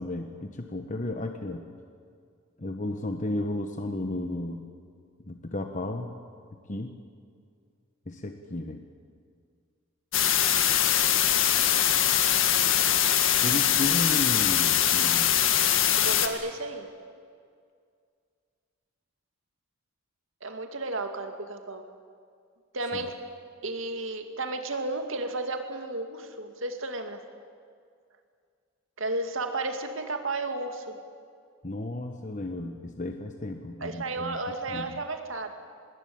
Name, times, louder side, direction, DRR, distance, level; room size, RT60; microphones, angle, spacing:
voice 1, 0.0-1.6 2.6-4.6 5.3-6.1 6.7-6.9 8.1-8.8 13.4-15.4 31.6-34.4 34.7-35.0, left 1 dB, 35° left, 5 dB, 1.2 m, -33 dB
sound 1, 10.1-16.3, left 10 dB, 65° left, 1.8 m, -22 dB
voice 2, 16.0-16.9 20.4-21.8 22.7-23.2 23.6-27.2 29.0-31.0 33.8-35.5, right 2 dB, 65° right, 5 dB, 2.4 m, -33 dB
25.5 x 20.5 x 8.8 m, 2.2 s
head